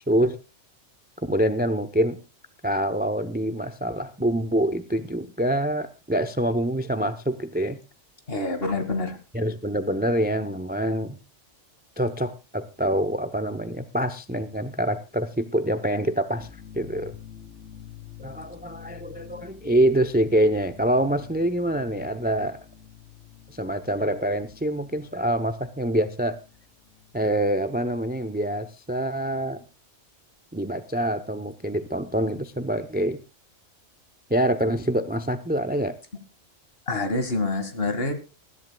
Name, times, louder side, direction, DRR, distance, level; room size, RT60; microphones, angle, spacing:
voice 1, 0.1-0.4 1.2-2.2 2.6-7.8 9.3-11.2 12.0-16.5 16.7-17.1 18.2-22.6 23.5-26.4 27.1-29.6 30.5-33.2 34.3-36.0, right 1 dB, 10° right, 11 dB, 0.6 m, -25 dB
voice 2, 8.3-9.2 36.9-38.1, left 2 dB, 50° left, 8 dB, 2.3 m, -26 dB
sound 1, 16.4-27.8, left 10 dB, 90° left, 3.8 m, -47 dB
20.0 x 14.0 x 2.3 m, 0.30 s
omnidirectional pair, 1.3 m